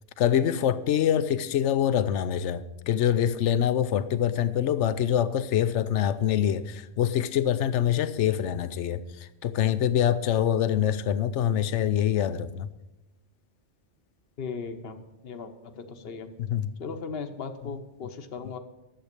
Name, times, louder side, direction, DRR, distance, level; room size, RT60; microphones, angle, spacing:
voice 1, 0.2-9.0 9.4-12.7 16.5-16.7, left 10 dB, 75° left, 0.9 m, -25 dB
voice 2, 14.4-16.3 16.8-18.6, left 5 dB, 55° left, 1.1 m, -37 dB
11.5 x 7.7 x 6.7 m
omnidirectional pair, 1.3 m